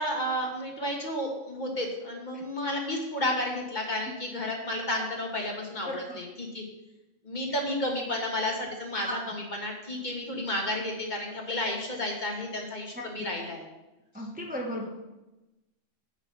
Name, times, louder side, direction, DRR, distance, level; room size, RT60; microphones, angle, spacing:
voice 1, 0.0-6.6 7.2-13.7, left 1 dB, 40° left, 0 dB, 1.5 m, -32 dB
voice 2, 5.8-6.2 8.9-9.1 12.9-13.3 14.1-14.9, left 1 dB, 5° right, -2 dB, 1.0 m, -36 dB
7.7 x 6.1 x 6.0 m, 1.0 s
omnidirectional pair, 1.3 m